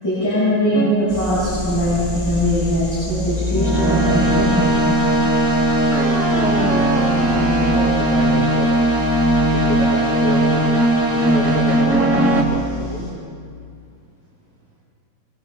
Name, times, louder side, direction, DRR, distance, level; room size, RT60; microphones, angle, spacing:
voice 1, 0.0-4.8 6.0-6.2, left 1 dB, 25° left, -10 dB, 8.5 m, -21 dB
sound 1, 0.7-0.9 3.5-12.4, right 1 dB, 5° right, 1.3 m, -18 dB
sound 2, 1.1-13.1, left 1 dB, 70° left, 10.0 m, -30 dB
voice 2, 6.3-8.7 9.5-10.6 11.1-13.2, equal, 35° right, -6 dB, 2.8 m, -29 dB
24.5 x 24.5 x 5.3 m, 2.3 s
omnidirectional pair, 5.0 m